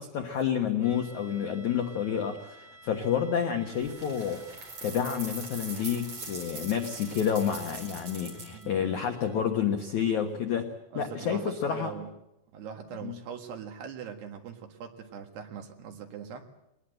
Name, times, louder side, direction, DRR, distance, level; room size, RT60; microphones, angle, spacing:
voice 1, 0.0-4.4 4.8-11.9 13.0-13.2, left 8 dB, 75° left, 5 dB, 1.7 m, -29 dB
sound 1, 0.8-9.5, right 1 dB, 5° right, 6.8 m, -54 dB
sound 2, 3.8-8.6, right 3 dB, 30° right, 5.0 m, -42 dB
voice 2, 8.5-8.9 10.9-12.1 12.5-16.5, right 7 dB, 65° right, 5 dB, 3.6 m, -41 dB
22.0 x 20.0 x 7.9 m, 0.89 s
omnidirectional pair, 5.5 m